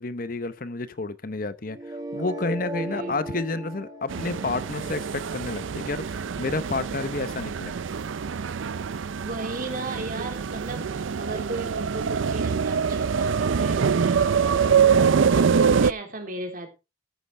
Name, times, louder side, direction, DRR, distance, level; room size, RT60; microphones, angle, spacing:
voice 1, 0.0-7.7, left 3 dB, 45° left, 0.8 m, -30 dB
sound 1, 1.6-7.6, right 2 dB, 20° right, 2.2 m, -38 dB
voice 2, 2.9-3.2 9.2-14.9 15.3-16.7, right 2 dB, 45° right, 3.1 m, -36 dB
sound 2, 4.1-15.9, right 6 dB, 85° right, 0.5 m, -24 dB
14.0 x 9.8 x 3.3 m
head